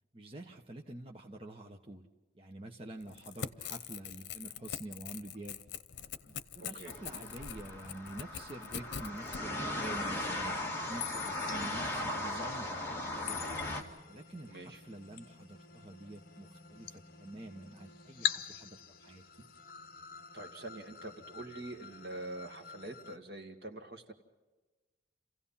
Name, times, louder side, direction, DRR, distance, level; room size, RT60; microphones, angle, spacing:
voice 1, 0.1-2.1 2.3-5.6 6.3-13.4 14.1-19.2, right 1 dB, 30° right, 1 dB, 1.2 m, -47 dB
Crackle / Tearing, 3.0-9.4, left 7 dB, 80° left, 0.8 m, -43 dB
voice 2, 6.6-7.0 11.5-11.8 14.5-14.8 20.3-24.1, right 2 dB, 55° right, 5 dB, 2.2 m, -45 dB
sound 1, 6.9-13.8, left 1 dB, 10° left, 2.4 m, -38 dB
sound 2, 9.8-23.2, left 9 dB, 50° left, 1.2 m, -44 dB
29.0 x 16.5 x 5.7 m, 1.2 s
head